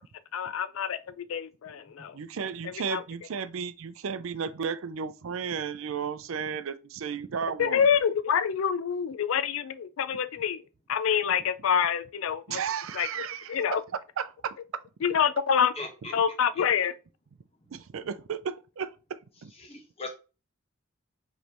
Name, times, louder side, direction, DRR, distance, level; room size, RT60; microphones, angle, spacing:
voice 1, 0.3-2.2 2.6-3.0 7.6-10.6 10.9-12.6 12.9-13.8 15.0-15.7 16.1-16.9, left 7 dB, 80° left, 0.4 m, -27 dB
voice 2, 2.1-7.8 12.5-13.8 14.2-14.6 17.7-19.5, right 6 dB, 80° right, 0.4 m, -34 dB
voice 3, 15.8-16.1 19.6-20.1, left 3 dB, 30° left, 1.0 m, -39 dB
5.1 x 3.2 x 3.0 m
head